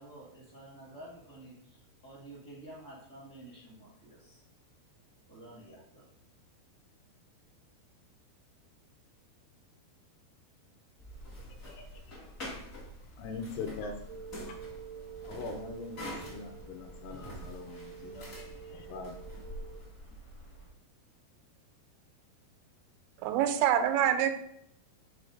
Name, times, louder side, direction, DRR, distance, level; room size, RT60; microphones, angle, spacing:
voice 1, 0.0-4.4 5.3-6.0, right 1 dB, 5° left, -7 dB, 0.6 m, -50 dB
sound 1, 11.0-20.7, equal, 55° left, 0.8 m, -46 dB
voice 2, 11.5-12.3 13.0-14.6 15.2-19.2, left 4 dB, 80° left, 3 dB, 2.4 m, -43 dB
sound 2, 14.1-19.8, right 8 dB, 70° right, 1.5 m, -48 dB
voice 3, 23.2-24.4, right 10 dB, 90° right, 8 dB, 2.9 m, -26 dB
6.2 x 3.4 x 5.1 m, 0.73 s
omnidirectional pair, 5.0 m